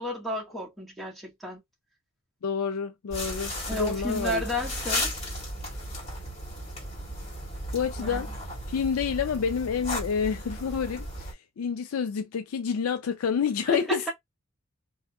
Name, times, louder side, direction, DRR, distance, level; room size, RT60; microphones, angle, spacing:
voice 1, 0.0-1.6 3.7-5.1 8.0-8.2 13.7-14.1, equal, ahead, 1.4 m, -32 dB
voice 2, 2.4-4.4 7.7-8.3 8.7-14.1, left 6 dB, 90° left, 0.4 m, -28 dB
sound 1, 3.1-11.3, left 1 dB, 30° left, 2.3 m, -35 dB
3.4 x 2.7 x 2.2 m
head